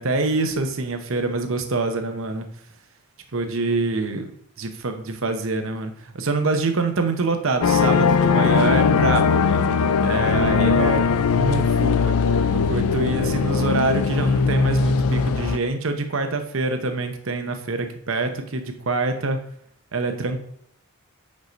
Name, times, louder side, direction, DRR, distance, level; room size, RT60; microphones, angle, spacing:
voice 1, 0.0-2.5 3.3-4.3 4.6-12.1 12.5-19.4 19.9-20.4, right 3 dB, 60° right, 7 dB, 0.8 m, -25 dB
sound 1, 7.6-15.6, left 5 dB, 75° left, 0.4 m, -20 dB
5.3 x 4.8 x 5.2 m, 0.69 s
head